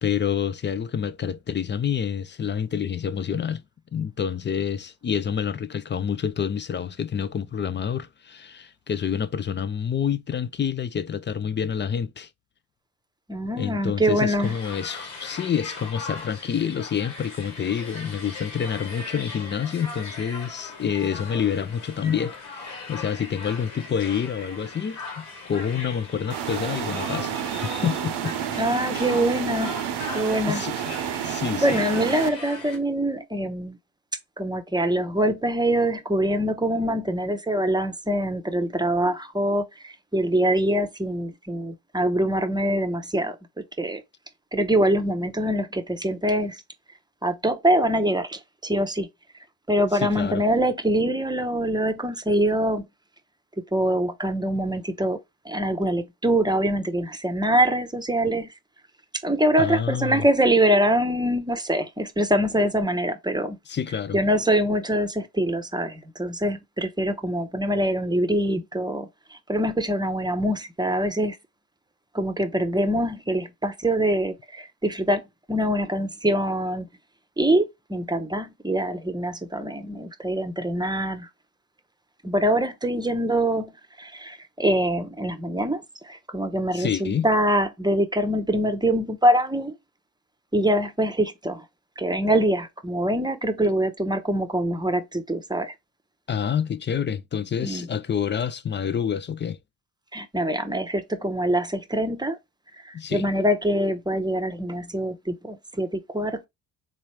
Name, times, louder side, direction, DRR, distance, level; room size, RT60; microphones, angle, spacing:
voice 1, 0.0-3.6 3.9-12.3 13.6-28.3 30.5-30.8 31.2-31.8 49.9-50.4 59.6-60.2 63.7-64.2 86.7-87.3 96.3-99.6 102.9-103.3, left 8 dB, 25° left, 0.4 m, -28 dB
voice 2, 13.3-14.5 28.6-29.9 30.1-30.6 31.0-31.3 31.6-33.8 34.4-44.0 44.5-46.6 47.2-49.1 49.7-52.9 53.6-55.2 55.4-58.5 59.2-63.6 64.1-71.4 72.1-75.2 75.5-76.9 77.4-81.3 82.2-89.7 90.5-91.6 92.0-95.7 97.6-97.9 100.1-102.4 102.8-106.5, right 1 dB, 10° right, 0.9 m, -24 dB
sound 1, 14.4-32.8, left 4 dB, 75° left, 1.7 m, -39 dB
sound 2, 26.3-32.3, right 10 dB, 55° right, 0.8 m, -30 dB
4.1 x 3.7 x 3.1 m
hypercardioid pair, 50°, 48 cm